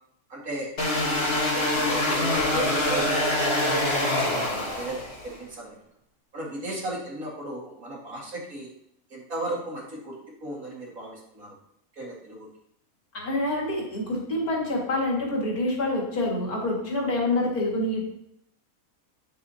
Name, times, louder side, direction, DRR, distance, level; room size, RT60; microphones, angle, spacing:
voice 1, 0.3-4.0 4.5-5.8 6.3-8.7 9.1-11.6 11.9-12.5, right 2 dB, 70° right, -4 dB, 2.6 m, -36 dB
sound 1, 0.8-5.3, left 1 dB, 45° left, 1.6 m, -25 dB
voice 2, 13.1-18.1, left 1 dB, 85° left, -4 dB, 2.7 m, -27 dB
9.4 x 7.3 x 2.9 m, 0.74 s
omnidirectional pair, 1.5 m